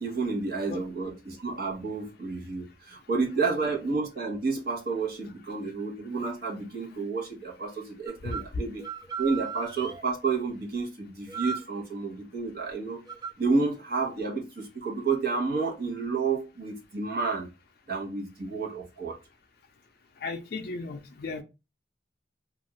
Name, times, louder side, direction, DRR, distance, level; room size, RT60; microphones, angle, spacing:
voice 1, 0.0-8.8 9.2-13.0 13.4-17.5 17.9-19.2, right 4 dB, 60° right, 1.0 m, -30 dB
sound 1, 8.1-8.5 8.8-10.0 11.3-11.7 13.1-13.3, right 5 dB, 25° right, 0.4 m, -36 dB
voice 2, 8.2-8.6 20.2-21.4, left 3 dB, 55° left, 0.4 m, -35 dB
2.4 x 2.4 x 3.1 m
head